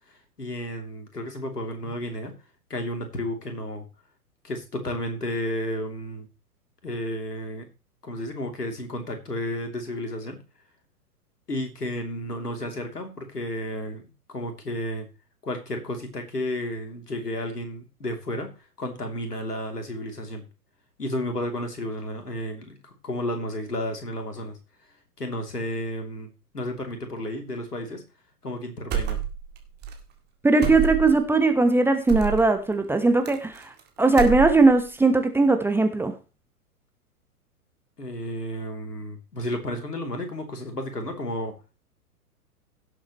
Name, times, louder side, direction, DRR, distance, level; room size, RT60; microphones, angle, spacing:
voice 1, 0.1-2.3 2.7-3.9 4.4-6.3 6.8-7.7 8.0-10.4 11.5-15.1 15.4-18.5 18.8-20.4 21.0-24.6 25.2-28.0 28.4-29.2 38.0-41.5, left 1 dB, 80° left, 5 dB, 3.1 m, -32 dB
sound 1, 28.9-29.6 29.8-30.0 30.6-31.2 32.1-32.4 33.3-33.8 34.1-34.8, right 9 dB, 20° right, 2.1 m, -28 dB
voice 2, 30.4-33.6 34.0-36.1, right 3 dB, 5° right, 7 dB, 1.0 m, -19 dB
17.0 x 7.7 x 3.1 m, 0.31 s
figure-of-eight pair, 110°, 46 cm